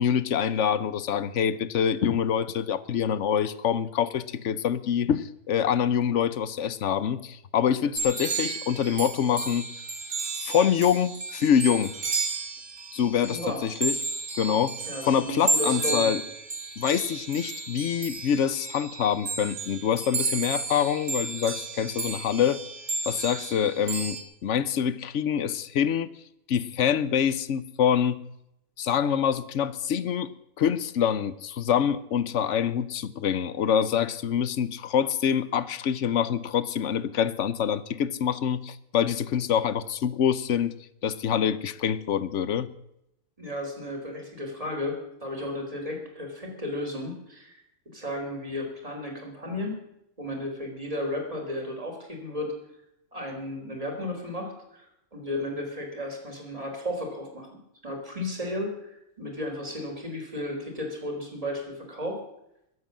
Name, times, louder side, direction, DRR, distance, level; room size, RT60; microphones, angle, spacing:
voice 1, 0.0-9.7 10.4-11.9 12.9-13.9 14.4-14.8 15.0-16.2 16.8-22.6 23.1-26.1 26.5-28.2 28.8-30.3 30.6-40.7 41.0-42.7, left 8 dB, 60° left, 16 dB, 1.1 m, -25 dB
sound 1, 7.9-24.2, right 4 dB, 80° right, 2.7 m, -33 dB
voice 2, 13.3-13.6 14.8-16.1 43.4-47.6 47.9-49.8 50.2-52.5 53.1-54.9 55.1-57.5 57.8-62.2, left 1 dB, 25° right, 1 dB, 3.9 m, -34 dB
21.5 x 7.9 x 7.4 m, 0.81 s
omnidirectional pair, 1.5 m